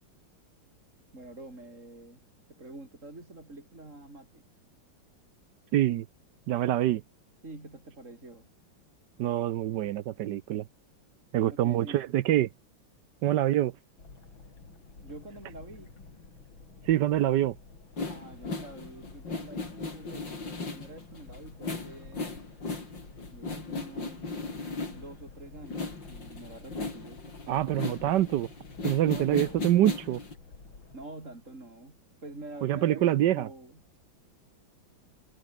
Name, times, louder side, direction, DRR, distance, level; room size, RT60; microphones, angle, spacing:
voice 1, 1.1-2.2 2.5-4.4 7.4-8.5 11.4-12.1 14.9-15.9 18.1-22.5 23.3-24.3 24.9-28.4 29.0-29.7 30.9-34.0, right 2 dB, 40° right, 5.6 m, -46 dB
voice 2, 5.7-6.0 6.5-7.0 9.2-10.6 11.3-12.5 13.2-13.7 16.9-17.5 27.5-28.5 28.8-30.2 32.6-33.5, right 13 dB, 70° right, 1.2 m, -25 dB
sound 1, 14.0-31.0, left 4 dB, 85° left, 4.8 m, -51 dB
sound 2, 18.0-25.3 25.6-30.3, left 3 dB, 65° left, 5.5 m, -37 dB
omnidirectional pair, 2.1 m